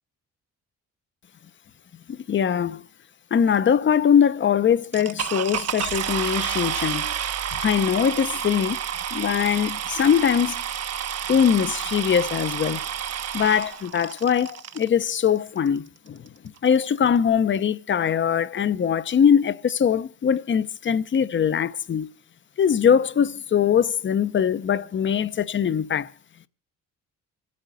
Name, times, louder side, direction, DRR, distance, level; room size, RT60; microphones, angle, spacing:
voice 1, 2.1-2.8 3.3-7.1 7.5-8.8 9.1-10.6 11.3-12.8 13.3-16.2 16.6-22.1 22.6-26.1, left 8 dB, 40° left, 0.7 m, -22 dB
sound 1, 4.9-14.9 15.7-15.8 16.3-16.4 16.6-16.9, right 9 dB, 55° right, 0.9 m, -30 dB
26.0 x 8.6 x 3.9 m
cardioid pair, 90°, 30 cm